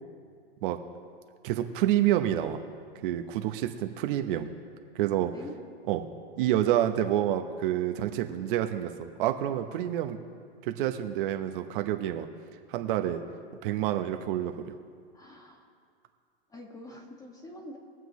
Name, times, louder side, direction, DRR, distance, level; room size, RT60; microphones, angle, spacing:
voice 1, 1.4-2.6 3.0-4.5 4.9-5.3 5.9-6.0 6.4-10.2 10.6-12.3 12.7-13.2 13.6-14.6, right 12 dB, 55° right, 6 dB, 0.9 m, -28 dB
voice 2, 15.1-15.7 16.5-17.8, left 1 dB, 10° left, 1 dB, 1.9 m, -45 dB
22.0 x 7.6 x 3.1 m, 2.2 s
hypercardioid pair, 125°, 31 cm